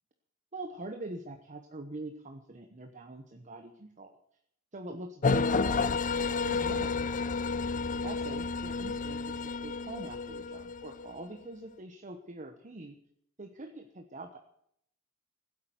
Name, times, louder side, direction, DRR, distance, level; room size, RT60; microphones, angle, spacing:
voice 1, 0.5-4.2 4.7-7.1 8.0-12.9 13.4-14.4, right 2 dB, 35° right, 6 dB, 1.0 m, -44 dB
sound 1, 5.2-11.2, left 4 dB, 35° left, 0.5 m, -31 dB
15.5 x 8.6 x 9.1 m, 0.72 s
head